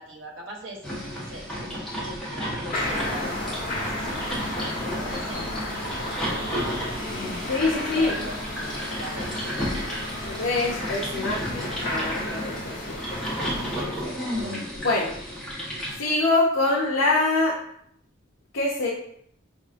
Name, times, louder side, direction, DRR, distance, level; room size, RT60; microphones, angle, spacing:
voice 1, 0.0-5.6 6.1-8.4 8.9-9.5, right 1 dB, 65° right, -1 dB, 0.9 m, -41 dB
sound 1, 0.8-16.0, equal, 5° left, 1.0 m, -33 dB
sound 2, 2.7-13.8, left 1 dB, 45° left, 1.3 m, -33 dB
voice 2, 7.5-8.1 10.2-13.0 13.8-14.2 14.8-15.2 16.0-17.6 18.5-18.9, left 2 dB, 80° left, -4 dB, 0.6 m, -25 dB
5.4 x 2.6 x 2.5 m, 0.68 s
head